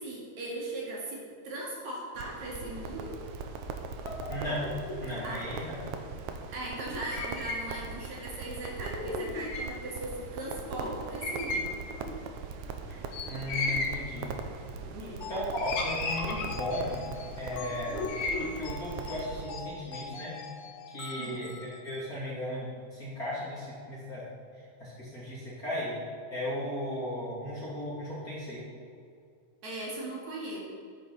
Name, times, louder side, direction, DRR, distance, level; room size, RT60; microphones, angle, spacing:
voice 1, 0.0-3.1 5.2-5.7 6.5-11.8 14.9-15.2 21.2-21.4 29.6-30.6, right 1 dB, 60° right, -4 dB, 3.5 m, -38 dB
Crackle, 2.2-19.4, right 5 dB, 75° right, 1.9 m, -41 dB
sound 1, 4.0-5.2 6.9-7.7 8.0-8.1 8.8-9.8 10.4-10.5 10.6-10.9 11.2-12.1 13.1-14.0 14.8-15.2 15.6-16.8 17.5-18.5, left 3 dB, 65° left, 2.6 m, -35 dB
voice 2, 4.3-4.7 5.0-5.8 13.1-14.3 15.3-18.0 18.5-20.3 20.9-24.2 24.8-26.0 26.3-28.6, left 1 dB, 25° left, -7 dB, 2.9 m, -36 dB
sound 2, 15.2-22.1, left 5 dB, 80° left, 1.2 m, -44 dB
13.5 x 9.1 x 4.2 m, 2.4 s
omnidirectional pair, 3.9 m